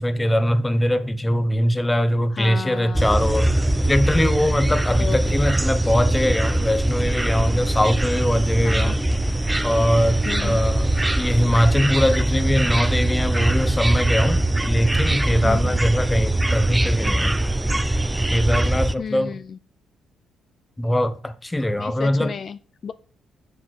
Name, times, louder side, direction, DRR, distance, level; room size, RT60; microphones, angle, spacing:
voice 1, 0.0-3.5 3.9-9.0 9.6-17.4 18.3-19.3 20.8-22.3, equal, 10° left, 0.9 m, -22 dB
voice 2, 2.3-3.1 5.0-5.4 8.6-9.0 10.3-10.6 15.4-15.8 19.0-19.6 21.8-22.9, left 6 dB, 50° left, 0.4 m, -32 dB
sound 1, 2.9-18.9, right 1 dB, 10° right, 0.5 m, -22 dB
7.3 x 6.7 x 4.7 m
cardioid pair, 90°, 0 cm